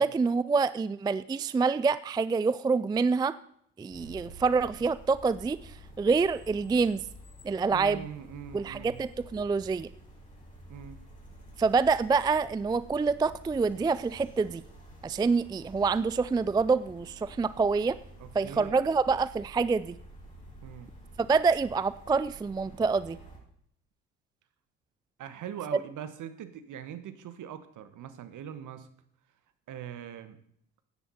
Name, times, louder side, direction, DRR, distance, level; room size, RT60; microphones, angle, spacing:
voice 1, 0.0-3.4 3.8-7.0 7.4-8.1 8.5-9.9 11.6-14.6 15.0-18.0 18.3-20.0 21.3-23.2, right 4 dB, 10° right, 17 dB, 0.4 m, -26 dB
sound 1, 3.9-23.4, right 1 dB, 20° left, 5.8 m, -50 dB
voice 2, 7.7-9.0 10.7-11.0 18.2-18.9 20.6-20.9 25.2-28.9 29.7-30.4, right 9 dB, 55° right, 11 dB, 1.6 m, -42 dB
15.0 x 10.0 x 4.3 m, 0.68 s
hypercardioid pair, 60°, 36 cm